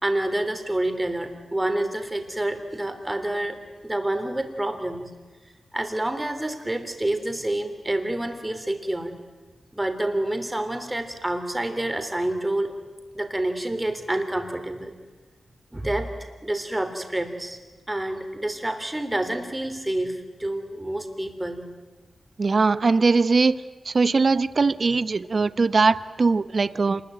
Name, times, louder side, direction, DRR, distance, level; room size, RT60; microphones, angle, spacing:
voice 1, 0.0-3.6 3.8-5.1 5.7-9.1 9.7-12.8 13.1-14.9 15.7-16.1 16.4-17.6 17.9-21.6, right 1 dB, 15° right, 6 dB, 3.2 m, -28 dB
voice 2, 22.4-23.6 23.8-27.0, right 4 dB, 45° right, 16 dB, 0.8 m, -21 dB
27.5 x 20.5 x 9.1 m, 1.3 s
wide cardioid pair, 100°, 0 cm